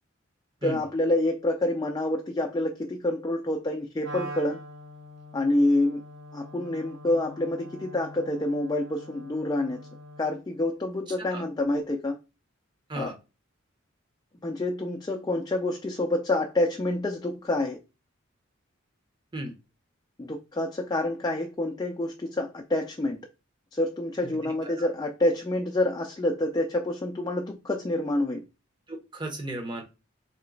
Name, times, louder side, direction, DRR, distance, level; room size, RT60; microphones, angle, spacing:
voice 1, 0.6-4.6 5.3-6.0 6.3-9.9 10.2-12.2 13.0-13.1 14.4-17.8 20.2-23.2 23.7-28.4, left 1 dB, 20° left, 0.3 m, -27 dB
Wind instrument woodwind instrument, 4.0-10.4, equal, 60° right, 0.9 m, -43 dB
voice 2, 24.4-24.9 28.9-29.8, right 1 dB, 20° right, 0.8 m, -36 dB
3.2 x 2.9 x 3.8 m
head